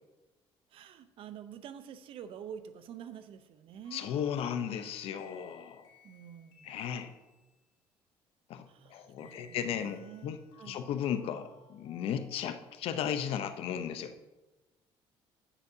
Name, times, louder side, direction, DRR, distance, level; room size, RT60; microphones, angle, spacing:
voice 1, 0.7-4.1 6.0-6.7 8.7-10.8, right 8 dB, 65° right, 11 dB, 0.6 m, -48 dB
sound 1, 3.8-7.6 9.2-12.9, left 5 dB, 90° left, 2.9 m, -61 dB
voice 2, 3.9-5.8 6.6-7.1 8.5-8.6 8.9-10.4 10.7-14.1, left 8 dB, 70° left, 10 dB, 0.7 m, -35 dB
9.9 x 8.4 x 2.7 m, 1.1 s
cardioid pair, 95°, 10 cm